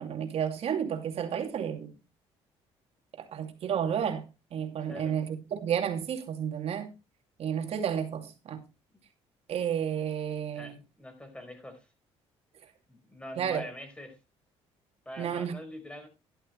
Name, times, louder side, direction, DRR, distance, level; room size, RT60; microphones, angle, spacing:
voice 1, 0.0-1.9 3.2-4.2 4.5-6.9 7.4-8.6 9.5-10.7 13.4-13.6 15.2-15.5, right 8 dB, 60° right, 2.5 m, -31 dB
voice 2, 4.8-5.2 8.9-9.0 10.5-11.9 12.9-14.2 15.0-16.1, left 1 dB, 10° left, 4.7 m, -44 dB
11.5 x 11.5 x 3.2 m
cardioid pair, 95°, 12 cm